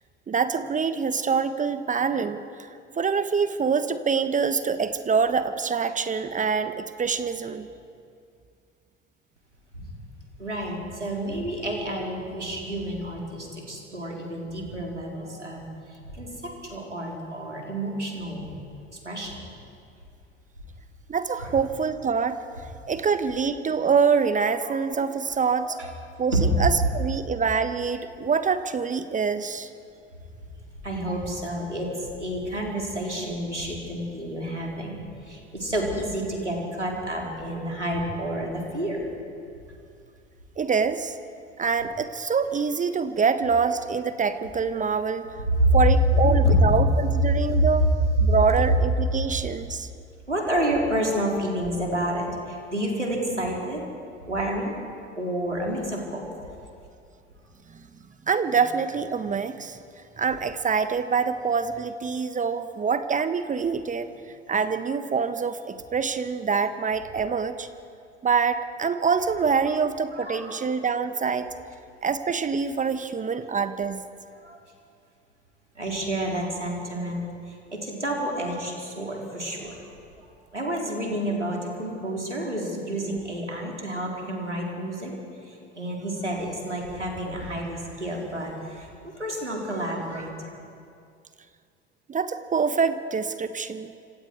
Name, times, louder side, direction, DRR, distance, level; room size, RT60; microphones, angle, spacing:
voice 1, 0.3-2.7 3.0-7.7 15.3-15.4 21.1-22.4 22.9-25.8 26.2-29.7 40.6-41.1 41.6-45.2 45.7-47.9 48.2-49.9 58.3-59.8 60.2-64.1 64.5-67.7 68.2-71.5 72.0-74.0 92.1-93.9, right 5 dB, 20° right, 11 dB, 1.2 m, -25 dB
voice 2, 10.4-18.5 18.9-19.5 21.4-21.5 24.6-25.1 25.6-25.9 26.4-26.5 30.8-39.2 45.5-45.8 46.4-46.6 47.5-47.7 50.3-53.8 54.2-54.7 55.2-56.3 69.7-69.8 70.1-70.5 71.1-71.4 74.4-74.6 75.7-79.8 80.2-80.3 80.5-85.1 85.4-90.4, equal, 90° right, -1 dB, 4.2 m, -29 dB
30.0 x 26.5 x 4.7 m, 2.4 s
figure-of-eight pair, 70°, 34 cm